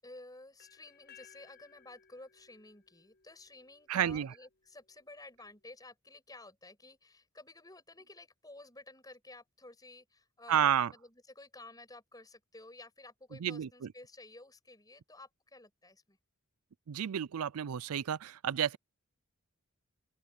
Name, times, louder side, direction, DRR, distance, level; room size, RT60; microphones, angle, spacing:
voice 1, 0.0-16.2, left 2 dB, 15° left, 6.3 m, -53 dB
sound 1, 0.6-4.5, left 9 dB, 50° left, 5.8 m, -61 dB
voice 2, 3.9-4.3 10.5-10.9 13.4-13.9 16.9-18.8, right 9 dB, 85° right, 0.4 m, -31 dB
open air
head